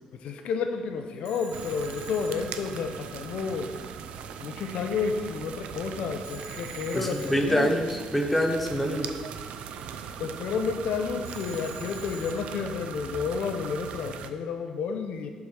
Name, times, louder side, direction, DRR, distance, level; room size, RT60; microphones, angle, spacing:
voice 1, 0.2-3.7 4.4-7.7 10.2-15.3, left 5 dB, 65° left, 6 dB, 0.7 m, -31 dB
Telephone, 1.3-3.2 6.3-8.1 11.3-12.9, right 2 dB, 30° right, 1.6 m, -47 dB
sound 1, 1.5-14.3, right 7 dB, 70° right, 0.5 m, -40 dB
voice 2, 6.9-9.1, equal, 5° left, 2 dB, 0.6 m, -25 dB
7.0 x 4.8 x 6.4 m, 1.5 s
cardioid pair, 175°, 2 cm